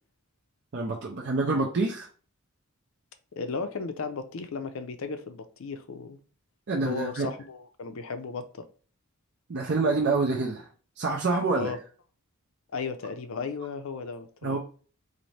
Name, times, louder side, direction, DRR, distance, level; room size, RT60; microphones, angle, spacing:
voice 1, 0.7-2.1 6.7-7.3 9.5-10.7 11.0-11.8 14.4-14.6, right 3 dB, 50° right, 0.5 m, -27 dB
voice 2, 3.4-6.2 6.8-8.7 11.5-11.8 12.7-14.6, left 4 dB, 60° left, 0.5 m, -35 dB
4.1 x 2.5 x 3.2 m
head